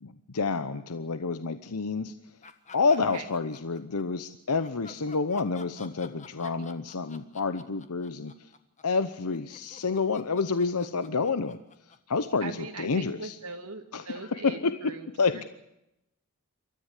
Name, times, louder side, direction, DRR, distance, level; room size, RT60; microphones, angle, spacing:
voice 1, 0.0-2.1 2.7-8.5 8.8-11.6 11.9-13.4 13.9-15.4, left 4 dB, 85° left, 11 dB, 0.9 m, -29 dB
sound 1, 2.4-4.0 4.6-12.8, left 4 dB, 35° left, 1.5 m, -50 dB
voice 2, 6.4-6.7 12.4-15.1 15.3-15.4, right 4 dB, 80° right, 5 dB, 2.0 m, -41 dB
28.5 x 13.5 x 8.2 m, 0.86 s
head